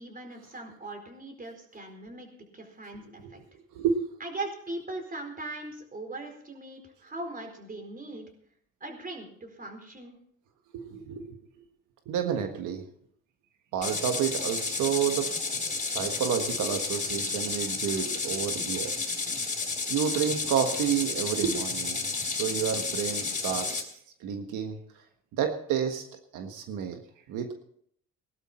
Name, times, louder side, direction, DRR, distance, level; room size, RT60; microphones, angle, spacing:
voice 1, 0.0-3.4 4.2-8.3 8.8-10.2, right 2 dB, 30° right, 4 dB, 4.5 m, -40 dB
voice 2, 3.7-4.1 10.7-11.4 12.1-12.9 13.7-15.4 15.8-19.1 19.9-23.8 24.2-24.8 25.3-26.0 26.3-27.0 27.3-27.5, right 8 dB, 90° right, 6 dB, 1.5 m, -30 dB
sound 1, 13.8-23.8, left 4 dB, 25° left, 3.9 m, -31 dB
19.0 x 12.0 x 4.4 m, 0.66 s
cardioid pair, 90°, 30 cm